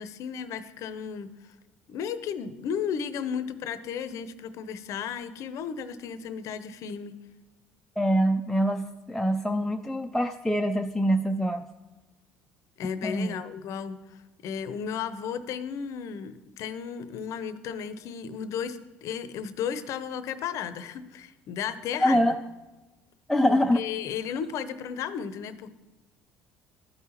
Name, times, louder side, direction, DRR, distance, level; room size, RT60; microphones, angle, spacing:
voice 1, 0.0-1.5 1.9-7.1 12.8-22.4 23.5-25.7, left 7 dB, 60° left, 13 dB, 0.6 m, -34 dB
voice 2, 8.0-11.6 13.0-13.3 22.0-22.3 23.3-23.8, equal, 5° left, 4 dB, 0.4 m, -24 dB
13.0 x 5.5 x 3.0 m, 1.1 s
hypercardioid pair, 70°, 6 cm